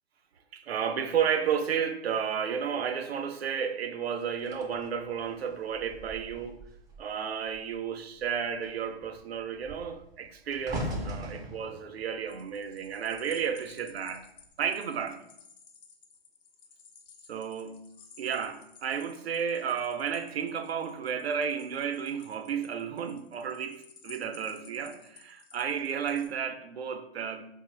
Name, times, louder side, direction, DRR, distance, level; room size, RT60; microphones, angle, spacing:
voice 1, 0.5-6.6 7.0-14.3 14.6-15.2 17.3-17.9 18.2-27.4, right 7 dB, 80° right, 0.5 m, -32 dB
sound 1, 4.4-7.2 7.5-7.8 8.1-13.5 14.2-14.5, right 1 dB, 15° right, 0.3 m, -41 dB
sound 2, 12.3-26.3, left 6 dB, 55° left, 0.7 m, -55 dB
4.0 x 2.0 x 3.1 m
hypercardioid pair, 110°, 31 cm